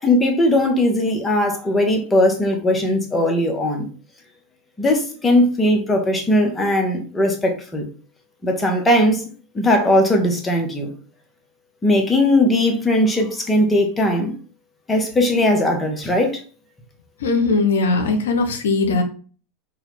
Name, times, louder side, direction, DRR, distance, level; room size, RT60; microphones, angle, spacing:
voice 1, 0.0-3.8 4.8-7.8 8.4-9.2 9.5-10.9 11.8-14.3 14.9-16.4, left 1 dB, 15° left, 3 dB, 0.9 m, -18 dB
voice 2, 17.2-19.0, left 3 dB, 85° left, 5 dB, 0.6 m, -19 dB
3.9 x 2.3 x 3.2 m, 0.40 s
hypercardioid pair, 105°, 0 cm